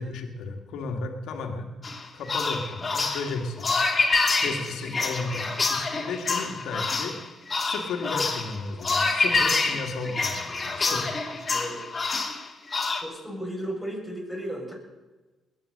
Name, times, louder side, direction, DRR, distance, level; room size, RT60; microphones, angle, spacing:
voice 1, 0.0-1.7 2.1-3.9 4.4-7.2 7.6-11.2, left 3 dB, 75° left, 5 dB, 2.0 m, -34 dB
sound 1, 1.8-13.0, left 3 dB, 35° left, 2.4 m, -27 dB
voice 2, 11.5-11.9 13.0-14.7, equal, 5° right, -1 dB, 6.8 m, -35 dB
20.0 x 9.2 x 6.7 m, 1.2 s
supercardioid pair, 55°, 0 cm